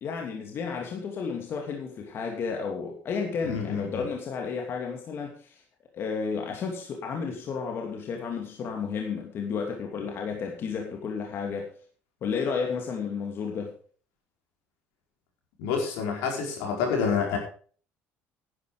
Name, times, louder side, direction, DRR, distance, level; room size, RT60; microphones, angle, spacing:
voice 1, 0.0-5.6 5.9-11.7 12.2-13.7, left 5 dB, 55° left, 2 dB, 2.7 m, -32 dB
voice 2, 3.4-4.1 15.6-17.4, left 6 dB, 85° left, 1 dB, 5.1 m, -28 dB
11.5 x 10.5 x 5.1 m, 0.43 s
supercardioid pair, 90°, 5 cm